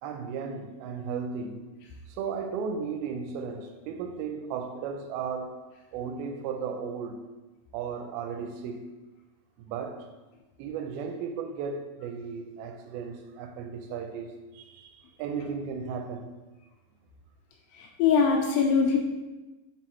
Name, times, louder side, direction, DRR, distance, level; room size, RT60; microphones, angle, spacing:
voice 1, 0.0-1.7 2.1-7.2 7.7-8.9 9.6-10.1 10.6-16.3, right 6 dB, 85° right, 2.5 m, -35 dB
voice 2, 17.8-19.0, left 6 dB, 80° left, 2.1 m, -22 dB
6.3 x 4.0 x 4.3 m
omnidirectional pair, 4.3 m